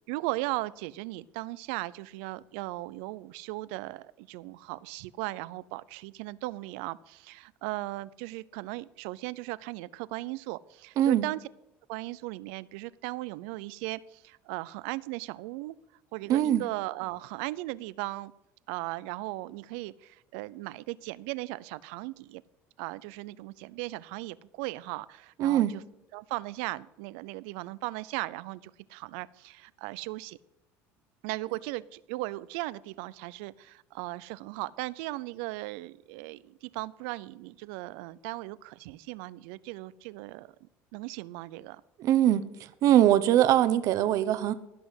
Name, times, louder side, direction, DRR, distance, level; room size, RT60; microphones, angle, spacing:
voice 1, 0.1-11.4 11.9-15.8 16.1-18.3 18.7-22.4 22.8-25.8 26.1-30.4 31.2-41.8, right 20 dB, 85° right, 19 dB, 0.6 m, -37 dB
voice 2, 11.0-11.3 16.3-16.6 25.4-25.7 42.0-42.4 42.8-44.5, right 12 dB, 60° right, 12 dB, 1.1 m, -22 dB
16.0 x 6.3 x 7.9 m, 0.88 s
supercardioid pair, 110°, 6 cm